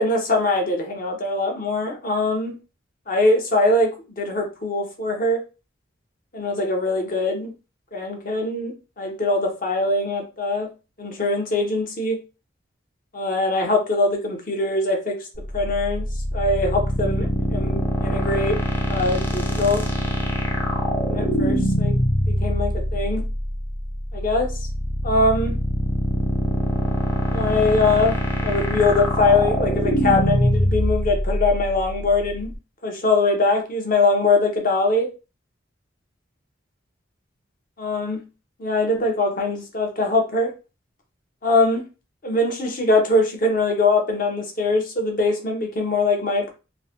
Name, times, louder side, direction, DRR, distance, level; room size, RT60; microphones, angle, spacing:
voice 1, 0.0-2.5 3.1-5.4 6.3-7.5 7.9-10.7 11.0-12.2 13.1-15.2 15.5-16.1 16.3-18.6 18.9-19.8 21.1-22.0 22.3-23.2 24.1-24.5 25.0-25.5 27.3-32.5 32.8-35.1 37.8-38.2 38.6-40.5 41.4-41.8 42.2-46.5, left 2 dB, 45° left, 3 dB, 0.7 m, -22 dB
sound 1, 15.3-32.5, equal, 10° left, 0.5 m, -23 dB
3.0 x 2.0 x 2.8 m, 0.31 s
head